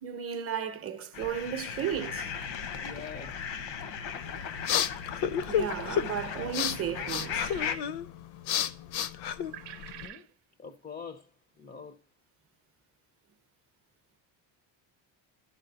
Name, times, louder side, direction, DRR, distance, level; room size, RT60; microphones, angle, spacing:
voice 1, 0.0-2.3 5.4-7.5, right 9 dB, 30° right, 0.7 m, -34 dB
sound 1, 1.1-7.8, left 7 dB, 85° left, 1.0 m, -37 dB
voice 2, 2.8-3.4 10.0-10.3 10.6-11.3 11.6-12.0, left 5 dB, 20° left, 0.4 m, -44 dB
sound 2, 4.2-10.1, left 9 dB, 60° left, 0.6 m, -32 dB
sound 3, 7.1-7.9 9.4-10.3, right 12 dB, 70° right, 0.7 m, -47 dB
12.0 x 4.1 x 3.9 m
cardioid pair, 145°, 44 cm